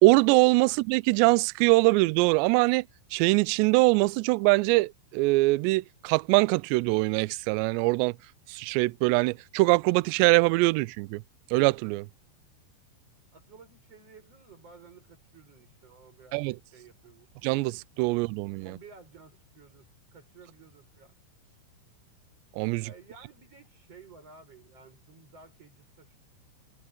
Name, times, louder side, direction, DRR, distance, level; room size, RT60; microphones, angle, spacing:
voice 1, 0.0-2.9 3.1-8.1 8.5-11.2 11.5-12.1 16.3-16.6 17.4-18.8 22.6-22.9, right 24 dB, 85° right, 2.5 m, -23 dB
voice 2, 13.3-16.4 16.7-17.3 18.6-21.2 22.8-26.2, right 4 dB, 30° right, 7.7 m, -53 dB
omnidirectional pair, 5.5 m